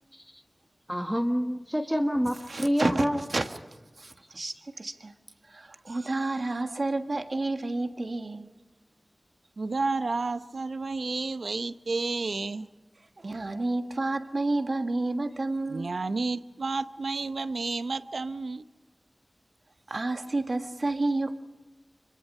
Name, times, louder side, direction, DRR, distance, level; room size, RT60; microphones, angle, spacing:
voice 1, 0.1-0.4 0.9-3.2, equal, 5° right, 1.3 m, -27 dB
voice 2, 2.5-3.5 4.0-5.1 5.5-8.5 13.2-15.9 19.9-21.5, right 2 dB, 65° right, 1.5 m, -30 dB
voice 3, 9.6-12.7 15.7-18.6, right 3 dB, 80° right, 0.7 m, -31 dB
25.0 x 22.5 x 5.5 m
cardioid pair, 45°, 0 cm